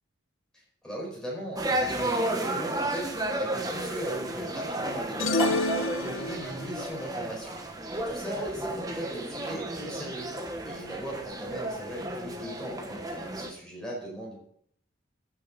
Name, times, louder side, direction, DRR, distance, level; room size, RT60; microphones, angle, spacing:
voice 1, 0.8-5.7 6.0-7.6 7.9-10.3 10.6-14.4, equal, 5° left, -3 dB, 4.7 m, -39 dB
sound 1, 1.6-13.5, right 1 dB, 20° right, 1.1 m, -32 dB
sound 2, 5.2-6.7, left 2 dB, 80° left, 0.9 m, -28 dB
14.5 x 7.2 x 5.1 m, 0.65 s
head